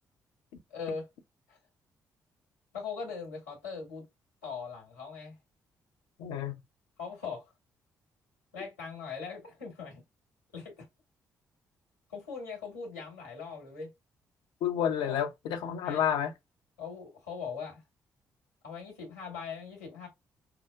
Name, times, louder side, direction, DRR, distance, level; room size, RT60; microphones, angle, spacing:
voice 1, 0.7-1.1 1.5-1.6 2.7-4.1 4.4-5.4 7.0-7.5 8.5-10.0 10.5-10.9 12.1-13.9 15.0-15.2 15.8-16.0 16.8-17.8 18.6-20.1, left 5 dB, 90° left, 1.5 m, -40 dB
voice 2, 6.2-6.6 14.6-16.3, left 9 dB, 70° left, 0.7 m, -30 dB
5.8 x 2.0 x 2.4 m
figure-of-eight pair, 40°, 8 cm